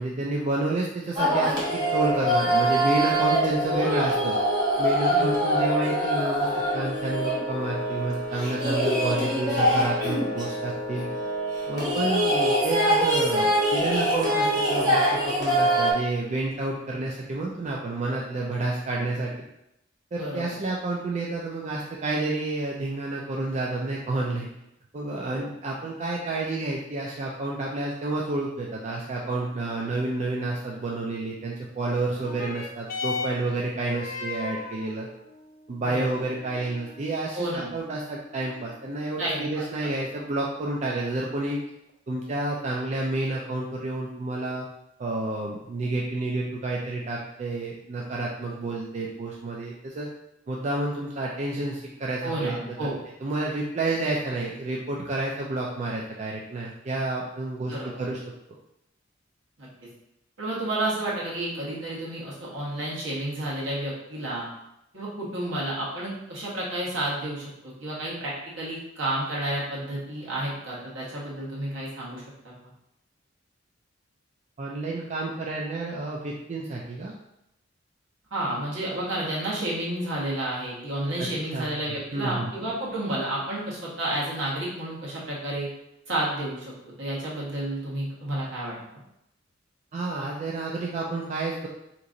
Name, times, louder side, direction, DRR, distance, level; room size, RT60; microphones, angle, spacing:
voice 1, 0.0-4.4 4.8-11.1 11.7-19.3 20.1-24.5 24.9-35.1 35.7-41.6 42.1-44.7 45.0-50.1 50.5-52.9 53.2-58.2 74.6-77.1 81.2-81.7 82.1-82.5 89.9-91.7, right 2 dB, 40° right, -3 dB, 0.4 m, -30 dB
sound 1, 1.2-15.9, right 1 dB, 20° right, 0.9 m, -24 dB
voice 2, 3.7-4.1 5.1-5.4 11.8-12.0 20.2-20.6 25.3-25.5 35.9-36.1 37.3-37.7 39.2-39.9 52.2-52.9 57.7-58.0 59.6-59.7 60.4-64.4 64.9-72.2 78.3-85.7 86.1-86.7 87.0-88.7, right 1 dB, 70° right, -6 dB, 1.2 m, -31 dB
sound 2, 32.1-41.1 41.9-42.0, left 4 dB, 50° left, 0.5 m, -39 dB
2.9 x 2.4 x 3.8 m, 0.84 s
head